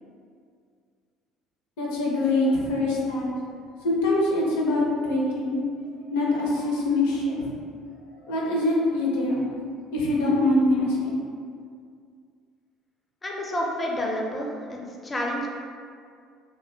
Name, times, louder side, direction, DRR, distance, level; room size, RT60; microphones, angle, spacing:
voice 1, 1.8-3.3 3.8-5.6 6.1-7.5 8.3-9.5 9.9-11.2, left 2 dB, 80° left, -3 dB, 0.5 m, -24 dB
voice 2, 13.2-15.5, left 1 dB, 25° left, -1 dB, 0.5 m, -29 dB
2.1 x 2.1 x 3.0 m, 2.2 s
hypercardioid pair, 65°, 0 cm